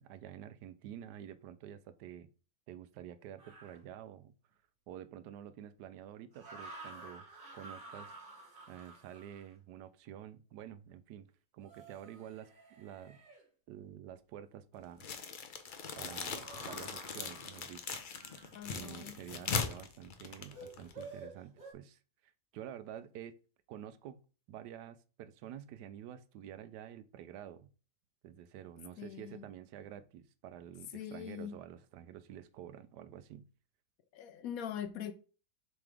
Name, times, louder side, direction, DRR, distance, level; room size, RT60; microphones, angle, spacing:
voice 1, 0.0-2.3 2.7-4.3 4.9-7.2 7.5-8.1 8.7-11.3 11.5-12.5 12.8-13.2 13.7-15.1 15.9-18.0 18.7-23.4 23.7-24.2 24.5-27.7 28.2-33.5, right 10 dB, 85° right, 1.2 m, -49 dB
sound 1, 3.4-3.8 6.3-9.5 11.6-13.4 16.3-18.5 20.5-21.7, right 2 dB, 50° right, 1.6 m, -51 dB
sound 2, 15.0-21.1, left 5 dB, 55° left, 0.5 m, -40 dB
voice 2, 18.5-19.1 29.0-29.5 30.9-31.5 34.1-35.1, left 9 dB, 70° left, 1.0 m, -42 dB
7.1 x 4.0 x 3.4 m
omnidirectional pair, 1.7 m